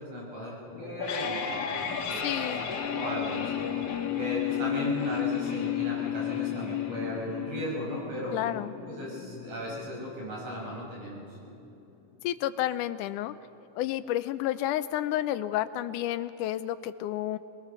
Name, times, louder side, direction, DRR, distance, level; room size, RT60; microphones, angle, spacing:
voice 1, 0.0-2.5 2.8-3.6 4.1-8.3 8.9-11.3, equal, 50° right, -4 dB, 7.4 m, -36 dB
sound 1, 0.7-11.7, left 9 dB, 55° left, 2.2 m, -33 dB
voice 2, 2.2-2.7 8.3-8.7 12.2-13.3 13.8-17.4, left 13 dB, 80° left, 13 dB, 2.1 m, -30 dB
23.0 x 20.5 x 6.8 m, 2.8 s
omnidirectional pair, 3.8 m